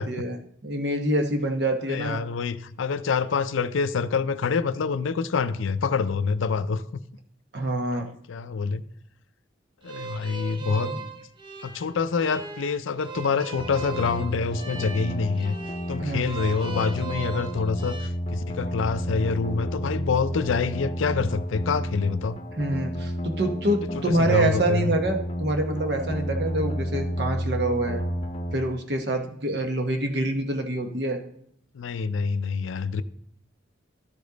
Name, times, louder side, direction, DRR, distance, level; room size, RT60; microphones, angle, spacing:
voice 1, 0.0-2.2 7.5-8.1 10.6-11.0 16.0-16.3 22.5-28.0 28.5-31.2, right 1 dB, 55° right, 1.1 m, -26 dB
voice 2, 1.9-7.0 7.9-8.8 9.8-10.9 11.6-15.6 15.9-22.4 24.1-25.0 31.7-33.0, left 5 dB, 85° left, 0.4 m, -26 dB
sound 1, 9.8-18.1, right 4 dB, 25° right, 0.6 m, -39 dB
sound 2, 13.6-28.5, equal, 30° left, 0.6 m, -31 dB
12.5 x 5.1 x 3.9 m
head